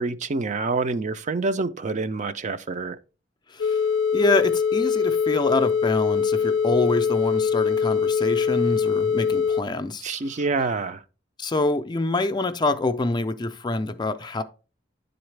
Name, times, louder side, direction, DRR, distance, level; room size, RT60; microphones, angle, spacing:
voice 1, 0.0-3.0 10.0-11.0, right 3 dB, 40° right, 0.4 m, -27 dB
sound 1, 3.6-9.6, left 6 dB, 85° left, 0.4 m, -23 dB
voice 2, 4.1-10.0 10.3-10.4 11.4-14.4, left 2 dB, 25° left, 0.4 m, -26 dB
10.0 x 3.9 x 3.2 m
head